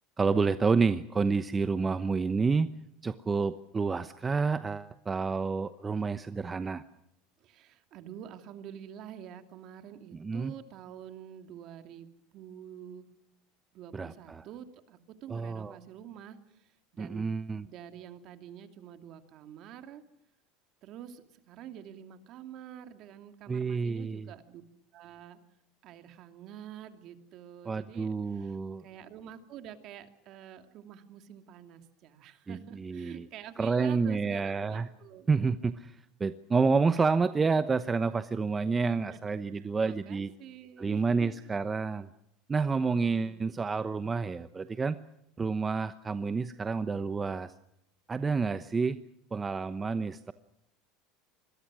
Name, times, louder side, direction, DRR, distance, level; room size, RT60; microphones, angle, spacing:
voice 1, 0.2-2.7 3.0-6.8 10.2-10.5 13.9-14.4 15.3-15.8 17.0-17.7 23.5-24.3 27.6-28.8 32.5-33.3 33.6-34.9 35.3-40.3 40.8-42.1 42.5-45.0 45.4-47.5 48.1-49.0 49.3-50.3, right 4 dB, 20° right, 12 dB, 0.9 m, -29 dB
voice 2, 7.4-13.1 13.7-17.3 17.6-20.0 20.8-24.6 24.9-25.4 25.8-28.6 28.8-35.3 39.1-41.3 42.8-43.5, right 10 dB, 55° right, 8 dB, 2.6 m, -48 dB
27.0 x 22.0 x 6.3 m, 0.78 s
supercardioid pair, 115°, 0 cm